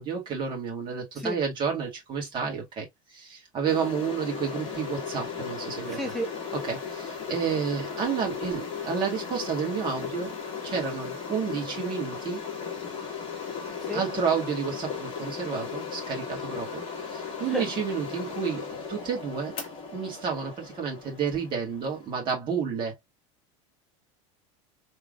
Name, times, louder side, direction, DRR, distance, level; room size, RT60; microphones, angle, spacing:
voice 1, 0.0-6.1 6.5-10.3 10.6-12.4 13.9-19.6 19.9-23.0, right 6 dB, 30° right, 2.1 m, -31 dB
sound 1, 3.7-22.1, left 6 dB, 30° left, 1.7 m, -36 dB
voice 2, 5.9-6.3 13.8-14.0 17.4-17.6, right 1 dB, ahead, 0.4 m, -31 dB
3.6 x 3.5 x 2.4 m
supercardioid pair, 160°, 17 cm